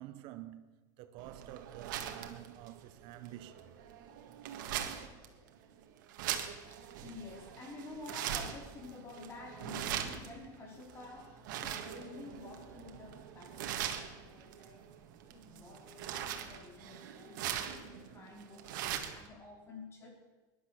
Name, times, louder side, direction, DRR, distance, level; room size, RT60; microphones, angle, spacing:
voice 1, 0.0-3.8, right 13 dB, 55° right, 0.9 m, -49 dB
sound 1, 1.2-19.3, right 10 dB, 80° right, 1.8 m, -42 dB
voice 2, 6.7-14.9 15.3-20.1, left 3 dB, 25° left, 3.7 m, -50 dB
18.5 x 11.0 x 6.4 m
supercardioid pair, 145°, 10 cm